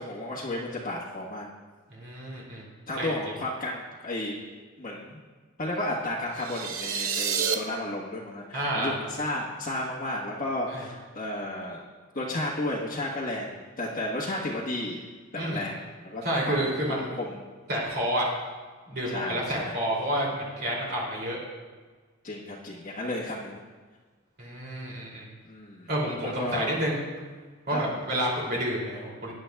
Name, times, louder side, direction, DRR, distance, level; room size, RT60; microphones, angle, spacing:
voice 1, 0.0-1.5 2.9-4.4 4.8-5.2 5.6-11.8 12.1-15.0 15.3-16.6 16.9-17.4 19.0-19.8 22.2-23.6 25.5-25.9 26.2-26.8 27.7-28.0, left 1 dB, 40° left, -7 dB, 1.3 m, -33 dB
voice 2, 1.9-2.7 3.0-3.1 8.5-9.0 10.7-10.9 15.4-15.6 16.2-17.1 17.7-18.3 18.9-21.4 24.4-25.3 25.9-27.0 27.7-29.3, right 1 dB, 50° right, -4 dB, 2.7 m, -29 dB
sound 1, 6.3-7.5, right 7 dB, 90° right, 0.8 m, -28 dB
18.5 x 10.0 x 2.3 m, 1.4 s
head